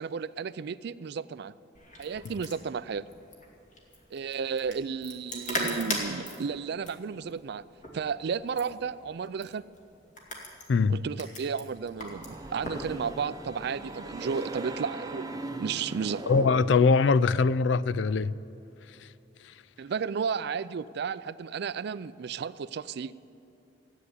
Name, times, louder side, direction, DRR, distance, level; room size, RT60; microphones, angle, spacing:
voice 1, 0.0-1.5 2.0-3.0 4.1-7.6 7.9-9.6 10.9-15.3 15.6-16.2 19.8-23.1, right 6 dB, 60° right, 17 dB, 0.4 m, -33 dB
sound 1, 1.7-12.9, left 1 dB, 45° left, 2.5 m, -39 dB
sound 2, 11.8-17.1, right 2 dB, 20° right, 0.8 m, -39 dB
voice 2, 16.3-18.3, left 4 dB, 75° left, 17 dB, 0.4 m, -22 dB
15.0 x 8.2 x 9.6 m, 2.8 s
head